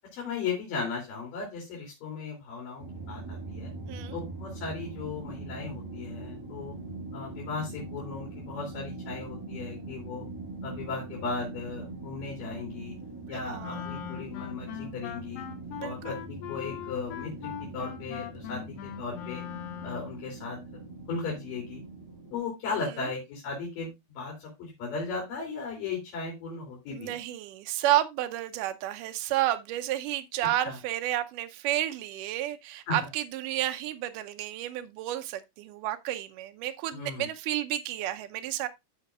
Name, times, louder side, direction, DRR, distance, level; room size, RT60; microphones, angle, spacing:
voice 1, 0.1-3.7 4.1-6.8 7.1-10.2 10.6-13.0 13.3-15.4 15.8-19.4 19.8-20.6 21.1-21.8 22.3-27.2 30.6-30.8 32.9-33.0 36.9-37.3, left 4 dB, 70° left, 4.4 m, -36 dB
sound 1, 2.8-22.4, right 2 dB, 5° right, 2.6 m, -42 dB
voice 2, 13.3-13.8 15.8-16.2 22.8-23.1 26.9-38.7, right 13 dB, 75° right, 2.2 m, -31 dB
Wind instrument woodwind instrument, 13.6-20.2, left 12 dB, 85° left, 2.7 m, -40 dB
13.5 x 5.7 x 2.4 m
omnidirectional pair, 4.1 m